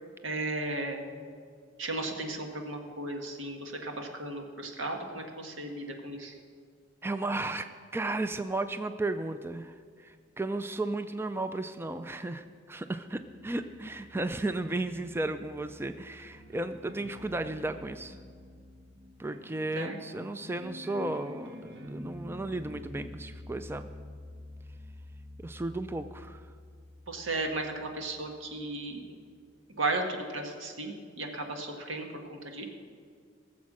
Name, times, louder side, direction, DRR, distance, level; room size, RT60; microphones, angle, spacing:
voice 1, 0.2-1.1 1.8-6.4 19.8-20.0 27.1-29.2 29.7-32.6, right 2 dB, 80° right, 3 dB, 1.7 m, -35 dB
voice 2, 7.0-18.2 19.2-23.9 25.4-26.4, right 2 dB, 10° right, 10 dB, 0.3 m, -34 dB
sound 1, 13.1-28.4, left 1 dB, 60° right, 1.3 m, -48 dB
18.5 x 7.3 x 6.2 m, 2.1 s
head